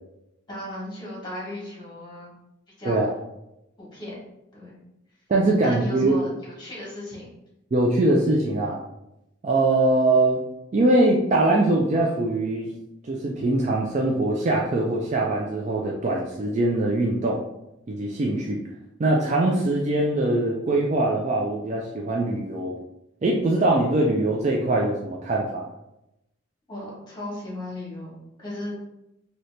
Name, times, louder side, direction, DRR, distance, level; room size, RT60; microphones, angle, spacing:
voice 1, 0.5-2.3 2.8-3.2 3.8-4.1 4.5-4.7 5.6-7.3 26.7-28.9, left 1 dB, 20° left, -5 dB, 1.1 m, -36 dB
voice 2, 5.3-6.2 7.7-8.8 9.4-10.4 10.7-12.7 13.1-17.4 17.9-18.6 19.0-22.7 23.2-25.6, right 2 dB, 35° right, -2 dB, 0.3 m, -22 dB
2.8 x 2.7 x 3.2 m, 0.89 s
head